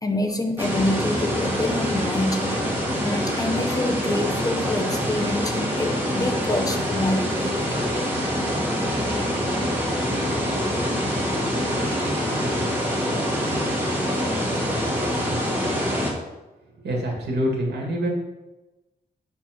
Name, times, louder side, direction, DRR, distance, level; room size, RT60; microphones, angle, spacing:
voice 1, 0.0-2.5 2.9-7.6, left 1 dB, 20° left, 3 dB, 0.8 m, -26 dB
sound 1, 0.6-16.1, equal, 10° right, 1.5 m, -25 dB
voice 2, 16.8-18.1, equal, 85° right, -1 dB, 2.2 m, -25 dB
7.4 x 4.5 x 6.0 m, 1.1 s
wide cardioid pair, 155°, 17 cm